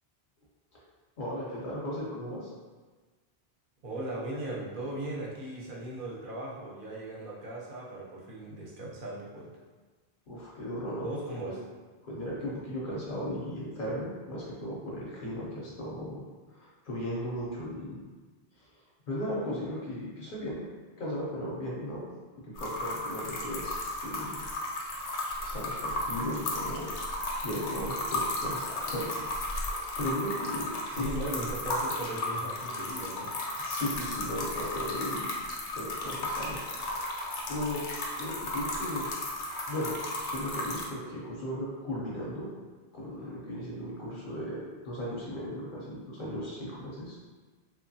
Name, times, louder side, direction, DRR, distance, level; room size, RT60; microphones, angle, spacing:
voice 1, 1.2-2.5 10.3-11.1 11.4-11.5 12.0-16.2 16.5-18.0 18.6-18.7 19.1-20.6 21.0-22.0 22.4-24.4 25.4-27.1 27.4-29.1 29.6-31.1 33.6-35.3 35.7-37.2 37.5-37.8 38.2-39.1 39.7-42.5 42.9-47.2, equal, 55° left, -5 dB, 0.7 m, -36 dB
voice 2, 3.8-9.5 11.0-11.6 30.9-33.3, right 1 dB, 55° right, -4 dB, 0.7 m, -38 dB
sound 1, 22.6-40.8, left 1 dB, 90° left, 0.9 m, -34 dB
2.9 x 2.2 x 2.6 m, 1.4 s
omnidirectional pair, 1.2 m